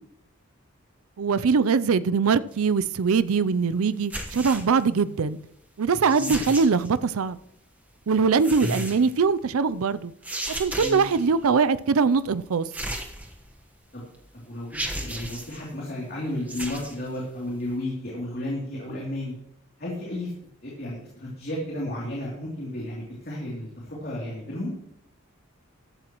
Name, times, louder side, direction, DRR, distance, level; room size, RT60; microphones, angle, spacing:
voice 1, 1.2-5.4 5.8-7.4 8.1-10.1 10.6-12.7, right 5 dB, 85° right, 15 dB, 0.5 m, -22 dB
sound 1, 4.0-4.8 6.0-6.9 8.3-9.1 10.2-11.2 12.7-13.6 14.1-14.2 14.7-15.6 16.4-17.0, right 1 dB, 5° right, 1.2 m, -34 dB
voice 2, 10.7-11.0 13.9-14.0 14.3-19.4 19.8-20.3 20.6-24.7, left 1 dB, 45° left, -4 dB, 3.0 m, -33 dB
14.5 x 11.5 x 3.1 m, 0.76 s
head